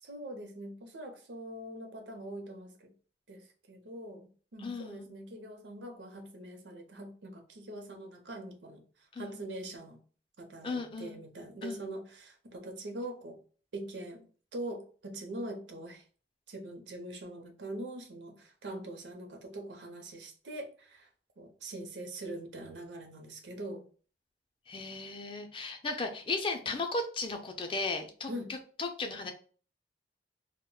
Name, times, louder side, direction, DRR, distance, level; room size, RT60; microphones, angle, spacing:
voice 1, 0.0-2.9 3.3-10.0 10.4-13.4 13.7-14.2 14.5-16.0 16.5-21.1 21.4-23.8 28.3-28.5, right 1 dB, 90° right, 5 dB, 0.6 m, -43 dB
voice 2, 4.6-5.1 9.1-9.4 10.6-11.2 11.6-11.8 24.7-28.3 28.8-29.3, left 3 dB, 30° left, 5 dB, 0.4 m, -35 dB
2.1 x 2.1 x 3.7 m, 0.40 s
head